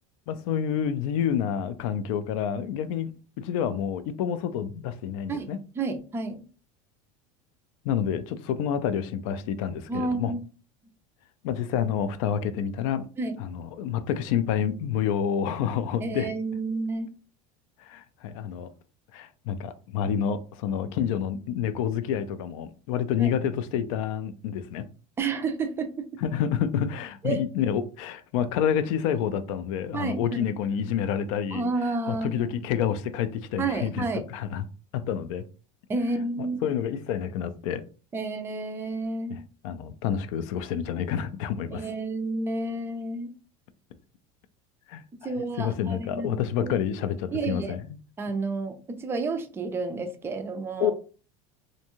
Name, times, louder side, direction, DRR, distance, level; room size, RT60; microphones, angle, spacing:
voice 1, 0.3-3.1 3.4-5.6 7.8-10.3 11.4-13.1 13.4-16.3 17.8-18.7 19.1-24.8 26.2-31.7 32.1-34.0 34.3-34.6 34.9-35.4 36.4-37.8 39.3-39.4 39.6-41.9 44.9-45.0 45.6-48.0 50.8-50.9, left 8 dB, 75° left, 0.4 m, -28 dB
voice 2, 5.8-6.4 9.9-10.4 13.2-13.4 16.0-17.1 23.2-23.3 25.2-26.1 27.2-27.4 29.9-30.5 31.5-32.6 33.6-34.2 35.9-36.7 38.1-39.4 41.7-43.3 45.2-46.7 47.3-47.8 48.2-50.9, right 3 dB, 15° right, 0.3 m, -30 dB
2.6 x 2.2 x 2.9 m
supercardioid pair, 145°, 17 cm